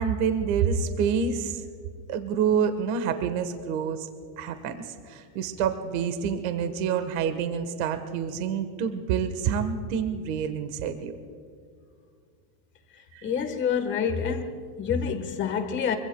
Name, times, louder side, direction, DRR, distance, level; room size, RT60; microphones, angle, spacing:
voice 1, 0.0-1.6 2.1-4.1 4.4-11.1 13.1-13.3, right 7 dB, 60° right, 8 dB, 1.4 m, -27 dB
voice 2, 13.2-16.0, left 7 dB, 25° left, 7 dB, 1.3 m, -27 dB
25.0 x 24.0 x 2.3 m, 2.2 s
supercardioid pair, 165°, 47 cm